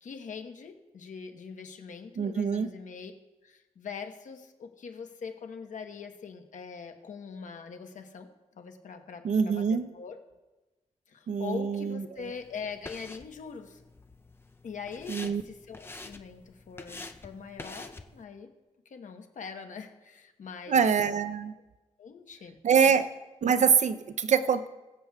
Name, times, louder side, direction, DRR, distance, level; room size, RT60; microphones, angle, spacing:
voice 1, 0.0-3.1 3.4-8.3 8.5-10.2 11.1-13.8 14.6-18.5 18.8-20.9 22.0-22.6 22.9-23.0 23.6-23.7, left 5 dB, 90° left, 5 dB, 1.0 m, -42 dB
voice 2, 2.2-2.7 9.2-9.9 11.3-12.1 15.1-15.4 20.7-21.5 22.6-23.1 23.4-24.7, right 6 dB, 70° right, 12 dB, 0.5 m, -24 dB
sound 1, 12.2-18.2, left 2 dB, 20° left, 0.5 m, -47 dB
21.0 x 8.1 x 2.3 m, 1.1 s
wide cardioid pair, 135°, 13 cm